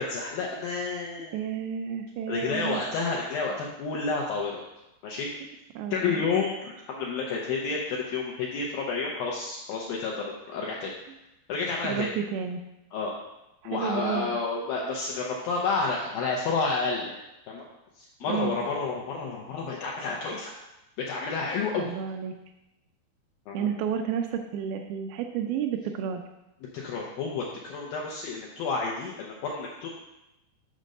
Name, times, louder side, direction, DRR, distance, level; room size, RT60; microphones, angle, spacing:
voice 1, 0.0-1.4 2.3-4.6 5.0-5.3 5.9-10.9 11.5-12.1 12.9-13.1 13.6-17.2 17.5-17.7 18.0-20.5 21.0-21.9 23.5-23.7 26.7-29.9, left 4 dB, 75° left, -2 dB, 2.2 m, -30 dB
voice 2, 1.3-2.8 5.8-6.2 11.8-12.6 13.6-14.3 18.3-18.6 21.8-22.3 23.5-26.2, right 8 dB, 90° right, 5 dB, 2.1 m, -31 dB
6.6 x 5.1 x 6.4 m, 0.94 s
omnidirectional pair, 5.0 m